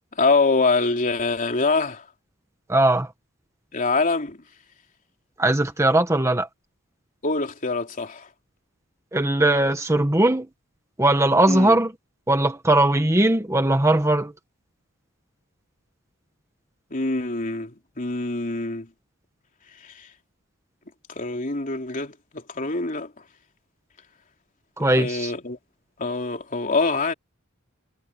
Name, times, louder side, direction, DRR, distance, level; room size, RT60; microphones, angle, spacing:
voice 1, 0.2-2.0 3.7-4.4 7.2-8.3 11.5-11.8 16.9-17.7 18.0-18.9 21.2-22.1 22.6-23.1 25.0-25.6 26.0-27.1, left 3 dB, 40° left, 3.6 m, -24 dB
voice 2, 2.7-3.1 5.4-6.5 9.1-10.5 11.0-11.9 12.3-14.3 24.8-25.3, right 1 dB, 15° right, 1.5 m, -19 dB
head